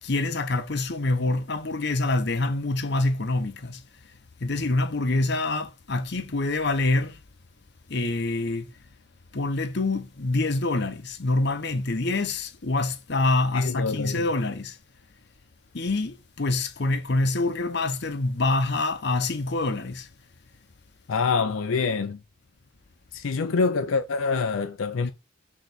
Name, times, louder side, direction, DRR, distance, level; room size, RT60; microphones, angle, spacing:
voice 1, 0.0-3.8 4.4-7.2 7.9-8.7 9.3-14.8 15.7-20.1 25.0-25.1, left 2 dB, 55° left, 0.8 m, -26 dB
voice 2, 13.5-14.3 21.1-22.2 23.1-25.1, left 4 dB, 75° left, 0.5 m, -26 dB
6.3 x 3.9 x 4.0 m
head